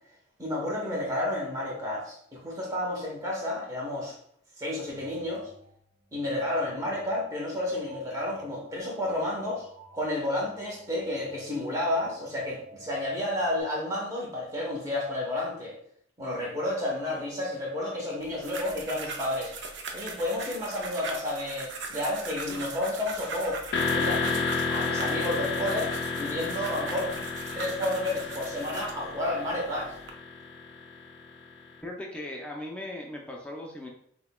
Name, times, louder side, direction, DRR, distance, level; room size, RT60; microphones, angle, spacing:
voice 1, 0.4-4.1 4.6-5.5 6.1-9.7 9.9-15.7 16.2-19.5 19.9-27.2 27.5-29.9, left 1 dB, 15° right, -3 dB, 0.9 m, -31 dB
sound 1, 4.9-13.6, equal, 40° right, 0.8 m, -53 dB
sound 2, 18.2-29.0 29.6-30.1, right 3 dB, 70° right, 0.5 m, -40 dB
sound 3, 23.7-31.5, left 4 dB, 60° left, 0.5 m, -31 dB
voice 2, 31.8-33.9, left 1 dB, 5° left, -1 dB, 0.5 m, -38 dB
5.7 x 2.3 x 2.2 m, 0.66 s
head